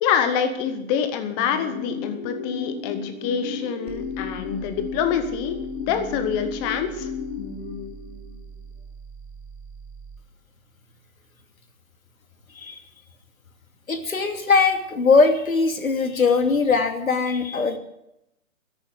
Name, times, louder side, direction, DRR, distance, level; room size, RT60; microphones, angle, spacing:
voice 1, 0.0-5.6 5.9-7.1, left 7 dB, 10° left, 9 dB, 0.7 m, -26 dB
sound 1, 1.4-8.5, left 5 dB, 45° left, 3.4 m, -34 dB
sound 2, 3.9-10.3, right 5 dB, 15° right, 1.4 m, -43 dB
voice 2, 13.9-17.8, left 4 dB, 80° left, 6 dB, 2.7 m, -20 dB
13.5 x 11.0 x 8.0 m, 0.84 s
hypercardioid pair, 150°, 41 cm